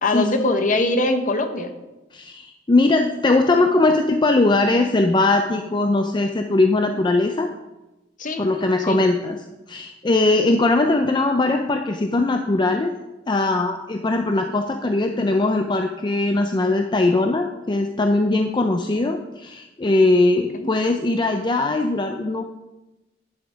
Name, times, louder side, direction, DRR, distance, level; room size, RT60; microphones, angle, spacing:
voice 1, 0.0-1.7 8.2-8.4 8.9-9.0 20.5-20.7, left 2 dB, 45° left, 6 dB, 1.0 m, -22 dB
voice 2, 2.1-7.5 8.4-9.4 9.7-12.9 13.3-22.4, left 2 dB, 25° left, 5 dB, 0.5 m, -20 dB
10.5 x 5.8 x 5.1 m, 1.0 s
head